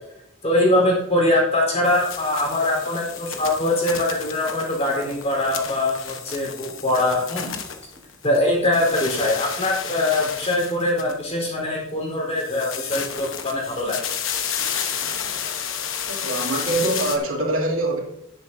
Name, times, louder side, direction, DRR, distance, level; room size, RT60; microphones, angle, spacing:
voice 1, 0.4-7.6 8.2-14.0, left 1 dB, 30° left, -2 dB, 3.9 m, -22 dB
sound 1, 1.8-8.4 8.6-11.5 12.3-17.2, left 8 dB, 70° left, 1.1 m, -31 dB
voice 2, 16.1-18.0, right 2 dB, 85° right, -2 dB, 2.7 m, -24 dB
17.5 x 7.5 x 2.7 m, 0.78 s
head